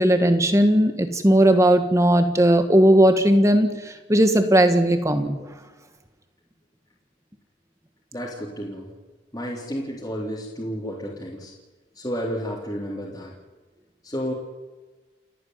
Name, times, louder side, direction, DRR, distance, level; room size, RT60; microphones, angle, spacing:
voice 1, 0.0-5.4, right 1 dB, 15° right, 7 dB, 1.7 m, -17 dB
voice 2, 8.1-8.9 9.3-11.5 11.9-13.3 14.0-14.3, equal, 20° left, -5 dB, 3.7 m, -31 dB
29.5 x 10.0 x 9.5 m, 1.3 s
head